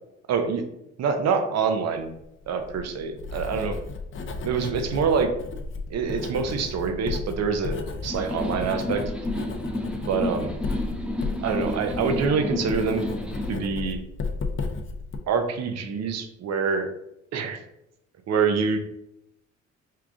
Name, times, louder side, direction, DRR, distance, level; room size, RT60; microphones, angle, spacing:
voice 1, 0.3-0.6 1.0-2.1 2.5-3.8 4.4-5.3 5.9-9.0 10.1-10.5 11.4-13.0 13.5-14.0 15.3-16.9 17.3-17.6 18.3-18.8, right 5 dB, 60° right, 6 dB, 0.7 m, -25 dB
Writing, 2.4-15.2, left 3 dB, 40° left, 0.6 m, -34 dB
sound 1, 8.1-13.5, left 1 dB, 5° right, 0.5 m, -31 dB
4.6 x 2.4 x 3.6 m, 0.81 s
cardioid pair, 90°, 30 cm